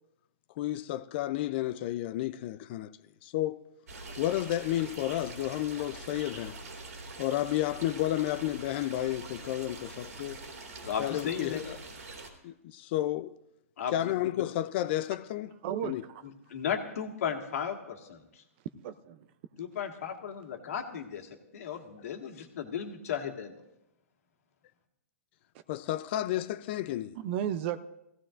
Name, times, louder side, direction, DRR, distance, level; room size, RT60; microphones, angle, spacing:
voice 1, 0.6-2.9 3.2-3.6 4.2-6.6 7.2-10.4 11.0-11.8 12.4-13.4 13.9-15.5 15.8-16.0 25.7-27.2, left 14 dB, 45° left, 0.5 m, -31 dB
sound 1, 3.9-12.3, right 3 dB, 85° right, 3.1 m, -44 dB
voice 2, 10.9-11.6 13.8-14.1 16.5-18.4 19.6-23.5, left 8 dB, 65° left, 1.8 m, -35 dB
voice 3, 15.6-16.2 18.8-19.3 27.2-27.8, right 10 dB, 45° right, 0.6 m, -33 dB
19.0 x 15.5 x 2.6 m
hypercardioid pair, 145°, 8 cm